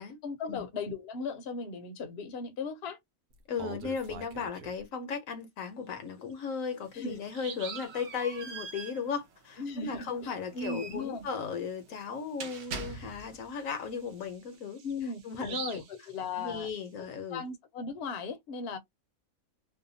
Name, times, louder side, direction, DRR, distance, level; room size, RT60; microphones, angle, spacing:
voice 1, 0.2-3.0 6.9-7.1 9.6-11.3 14.8-16.7 17.3-18.8, left 4 dB, 55° left, 0.8 m, -37 dB
Bird vocalization bird call bird song, 3.3-4.8 6.3-6.4 6.8-6.9 7.3-8.0 11.5-11.6 12.0-12.1 12.6-16.9, right 7 dB, 85° right, 1.1 m, -45 dB
voice 2, 3.5-14.8 15.2-15.8 16.4-17.4, left 6 dB, 70° left, 1.1 m, -36 dB
sound 1, 6.8-13.5, right 4 dB, 55° right, 0.9 m, -44 dB
2.7 x 2.2 x 2.6 m
omnidirectional pair, 1.5 m